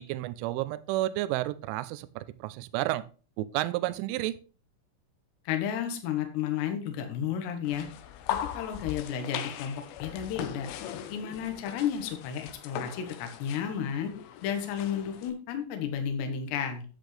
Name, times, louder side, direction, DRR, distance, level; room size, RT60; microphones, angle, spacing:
voice 1, 0.0-3.0 3.4-4.3, right 16 dB, 85° right, 14 dB, 3.0 m, -31 dB
voice 2, 5.4-7.9 8.5-10.7 11.1-14.1 14.4-16.9, left 8 dB, 70° left, 6 dB, 3.3 m, -32 dB
sound 1, 7.7-15.3, left 10 dB, 85° left, 3.3 m, -39 dB
10.5 x 8.1 x 3.3 m, 0.36 s
omnidirectional pair, 5.6 m